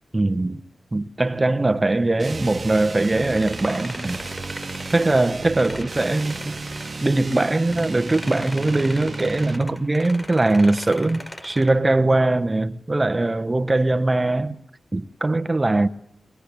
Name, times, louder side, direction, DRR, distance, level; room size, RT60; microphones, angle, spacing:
voice 1, 0.1-0.6 0.9-4.2 4.9-6.5 7.0-14.6 14.9-15.9, right 2 dB, 25° right, 1.1 m, -21 dB
sound 1, 2.2-9.7, right 3 dB, 50° right, 1.3 m, -34 dB
sound 2, 2.9-7.4 7.7-11.8, equal, 20° left, 6.6 m, -38 dB
22.5 x 22.0 x 8.5 m
wide cardioid pair, 85°, 0 cm